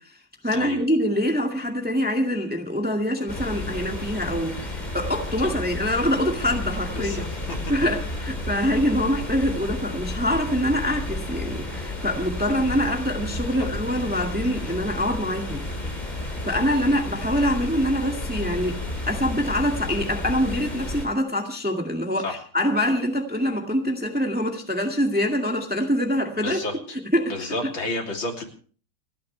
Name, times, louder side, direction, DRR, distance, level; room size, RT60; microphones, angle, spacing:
voice 1, 0.4-7.3 7.7-15.6 16.4-18.8 19.1-26.6 27.1-27.5, equal, 5° right, 2 dB, 1.9 m, -25 dB
sound 1, 3.3-21.1, left 2 dB, 20° left, 3.2 m, -32 dB
voice 2, 6.9-7.6 22.2-22.4 26.4-26.8 27.3-28.4, left 2 dB, 70° left, 1 dB, 3.7 m, -31 dB
29.5 x 10.5 x 3.3 m, 0.42 s
omnidirectional pair, 2.3 m